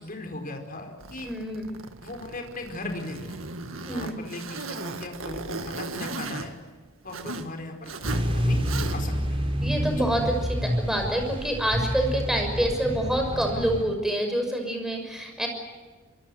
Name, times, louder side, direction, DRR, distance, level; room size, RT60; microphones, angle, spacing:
voice 1, 0.0-1.3 2.0-3.4 3.8-6.5 7.0-8.6 8.9-9.5 10.0-10.1, left 2 dB, 45° left, 4 dB, 4.6 m, -38 dB
Zipper (clothing), 1.0-7.5 7.8-8.3 8.6-9.2, right 3 dB, 80° right, 1.9 m, -37 dB
voice 2, 1.2-1.7 3.9-4.1 9.6-15.5, right 1 dB, ahead, 3 dB, 6.1 m, -27 dB
sound 1, 8.0-13.8, equal, 25° right, 4.1 m, -28 dB
25.0 x 24.5 x 7.9 m, 1.3 s
head